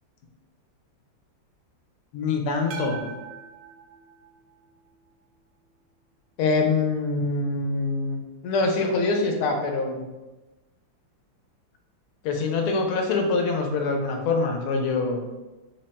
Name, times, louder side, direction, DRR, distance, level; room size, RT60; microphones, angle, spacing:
voice 1, 2.1-3.0 6.4-10.0 12.2-15.2, left 3 dB, 85° left, 3 dB, 1.5 m, -24 dB
sound 1, 2.7-5.0, right 5 dB, 70° right, 1.1 m, -41 dB
4.0 x 2.2 x 4.0 m, 1.1 s
omnidirectional pair, 2.3 m